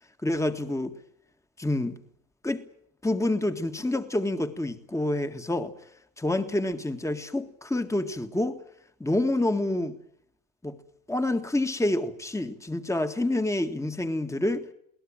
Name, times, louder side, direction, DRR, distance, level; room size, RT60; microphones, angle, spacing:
voice 1, 0.2-0.9 1.6-2.0 2.4-2.6 3.0-5.7 6.2-8.6 9.0-10.0 10.6-10.8 11.1-14.7, left 1 dB, 5° left, 1.8 m, -27 dB
22.5 x 17.5 x 8.9 m
supercardioid pair, 75°, 48 cm